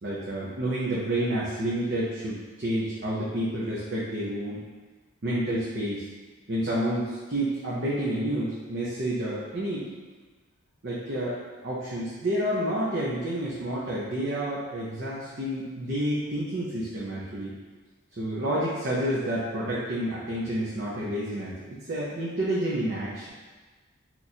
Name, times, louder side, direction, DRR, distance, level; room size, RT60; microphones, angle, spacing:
voice 1, 0.0-4.6 5.2-6.0 6.5-9.9 10.8-11.3 11.6-17.5 18.2-23.3, right 1 dB, 55° right, -8 dB, 0.6 m, -29 dB
2.9 x 2.5 x 4.1 m, 1.3 s
head